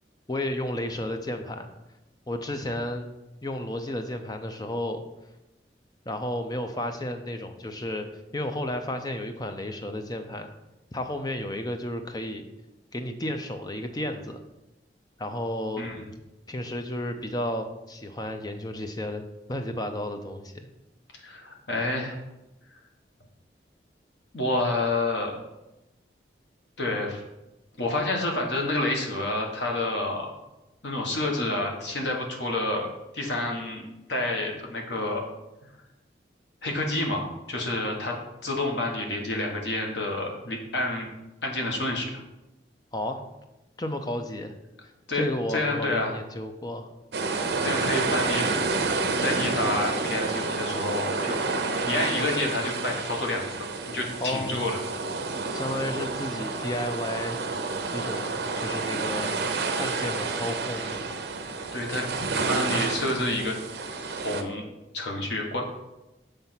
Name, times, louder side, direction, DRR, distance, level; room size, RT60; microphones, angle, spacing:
voice 1, 0.3-1.7 2.3-3.1 3.4-5.0 6.1-8.1 8.3-10.5 10.9-12.5 12.9-14.4 15.2-15.9 16.5-19.2 19.5-20.7 42.9-43.2 43.8-44.5 45.1-46.9 54.2-54.8 55.5-57.4 57.9-59.3 59.8-61.2, left 1 dB, 20° left, 7 dB, 0.5 m, -32 dB
voice 2, 21.2-22.2 22.7-22.8 24.3-25.4 26.8-27.2 27.8-30.3 30.8-32.9 33.1-33.8 34.1-35.2 35.6-35.7 36.6-38.2 38.4-41.1 41.4-42.2 45.1-45.2 45.5-46.1 47.6-48.4 49.2-51.4 51.8-53.6 53.9-54.8 61.7-62.0 62.5-63.6 64.1-64.6 64.9-65.6, left 2 dB, 85° left, 1 dB, 1.3 m, -28 dB
sound 1, 47.1-64.4, right 3 dB, 70° right, 0.7 m, -29 dB
7.1 x 3.4 x 5.8 m, 0.97 s
head